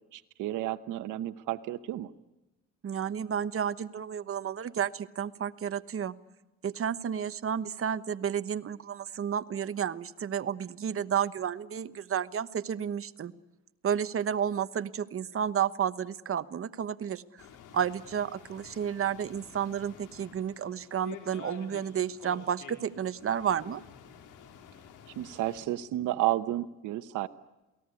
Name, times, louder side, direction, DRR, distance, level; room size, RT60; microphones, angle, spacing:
voice 1, 0.1-2.1 25.2-27.3, right 14 dB, 90° right, 10 dB, 1.0 m, -32 dB
voice 2, 2.8-6.1 6.6-13.3 13.8-17.5 17.7-23.8, right 8 dB, 45° right, 13 dB, 1.2 m, -31 dB
sound 1, 17.4-25.7, left 8 dB, 85° left, 4.2 m, -50 dB
28.5 x 18.5 x 9.7 m, 1.0 s
cardioid pair, 90°, 30 cm